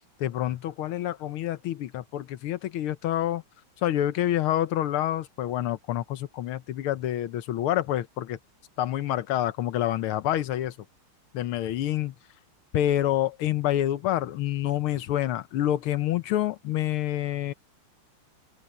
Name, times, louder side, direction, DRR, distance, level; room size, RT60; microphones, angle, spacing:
voice 1, 0.2-3.4 3.8-8.4 8.8-10.8 11.3-12.1 12.7-17.5, left 12 dB, 85° left, 1.8 m, -27 dB
open air
omnidirectional pair, 2.3 m